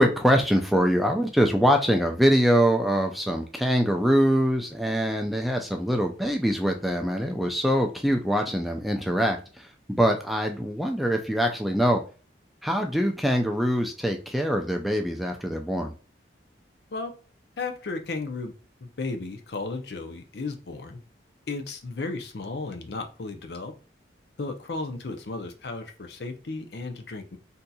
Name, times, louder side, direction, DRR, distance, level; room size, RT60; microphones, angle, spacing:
voice 1, 0.0-12.0 12.6-15.9, equal, ahead, 3 dB, 0.3 m, -23 dB
voice 2, 17.6-18.5 18.8-21.0 21.5-23.7 24.4-27.4, left 3 dB, 65° left, 6 dB, 0.6 m, -34 dB
4.0 x 2.7 x 2.3 m, 0.36 s
head